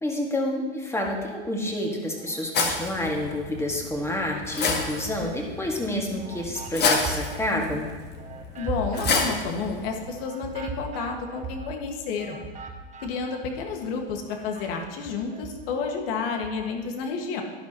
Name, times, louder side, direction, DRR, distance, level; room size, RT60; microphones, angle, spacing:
voice 1, 0.0-7.9, left 1 dB, 10° left, 0 dB, 1.9 m, -29 dB
sound 1, 0.9-1.7 2.2-3.8 4.2-13.9 14.2-16.8, right 4 dB, 20° right, 1.2 m, -40 dB
sound 2, 2.5-10.1, left 4 dB, 30° left, 1.6 m, -30 dB
voice 2, 8.6-12.4 13.0-17.4, left 5 dB, 60° left, 3 dB, 1.8 m, -30 dB
11.5 x 11.0 x 3.0 m, 1.3 s
hypercardioid pair, 110°, 32 cm